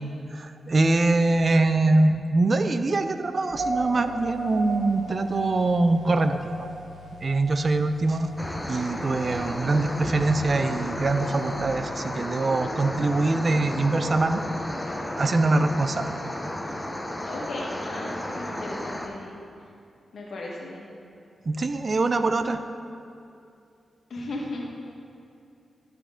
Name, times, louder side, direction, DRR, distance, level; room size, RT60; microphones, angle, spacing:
voice 1, 0.3-6.4 7.2-8.3 8.7-14.4 15.2-16.1 21.5-22.6, right 2 dB, 45° right, 9 dB, 0.4 m, -23 dB
sound 1, 3.5-11.6, right 1 dB, 75° right, 1.0 m, -37 dB
sound 2, 8.4-19.1, left 1 dB, 15° left, 0.7 m, -33 dB
voice 2, 17.2-19.3 20.1-20.8 24.1-24.7, left 2 dB, 70° left, -3 dB, 1.6 m, -36 dB
12.0 x 5.0 x 3.8 m, 2.6 s
cardioid pair, 90°, 0 cm